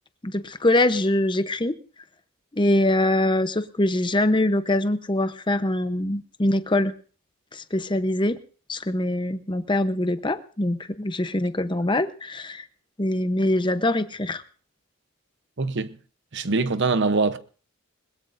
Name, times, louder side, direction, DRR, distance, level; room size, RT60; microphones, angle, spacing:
voice 1, 0.2-1.8 2.5-6.9 7.5-8.4 8.7-12.6 13.0-14.4, left 1 dB, 20° left, 0.8 m, -23 dB
voice 2, 15.6-16.0 16.3-17.4, right 3 dB, 55° right, 0.9 m, -23 dB
21.0 x 21.0 x 2.6 m
head